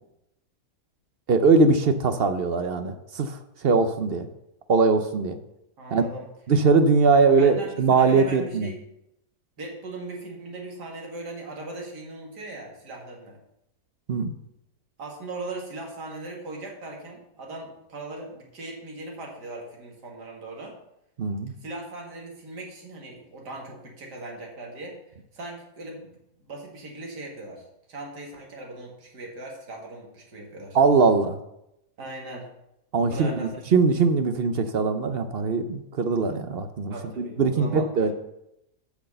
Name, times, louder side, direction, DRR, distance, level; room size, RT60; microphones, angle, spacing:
voice 1, 1.3-4.3 4.7-5.4 5.9-6.0 6.5-8.7 14.1-14.3 21.2-21.5 30.7-31.4 32.9-38.1, right 4 dB, 55° right, 9 dB, 0.7 m, -21 dB
voice 2, 5.8-6.3 7.1-8.8 9.6-13.4 15.0-20.8 21.6-25.0 25.3-26.1 26.4-30.8 32.0-32.5 33.1-33.7 36.9-38.1, right 2 dB, 85° right, -1 dB, 2.6 m, -39 dB
8.2 x 6.2 x 6.6 m, 0.83 s
omnidirectional pair, 1.7 m